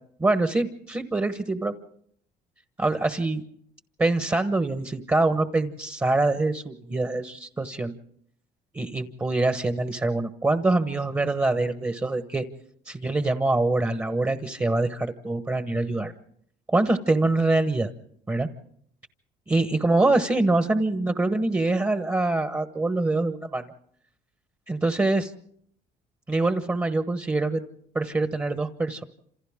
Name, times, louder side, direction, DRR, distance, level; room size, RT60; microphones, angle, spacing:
voice 1, 0.2-1.7 2.8-3.4 4.0-7.9 8.7-12.4 12.8-16.1 16.7-17.9 18.3-18.5 19.5-23.7 24.7-25.3 26.3-27.6 27.9-29.0, right 2 dB, 15° right, 9 dB, 1.2 m, -24 dB
28.0 x 27.5 x 3.7 m, 0.67 s
cardioid pair, 110°, 17 cm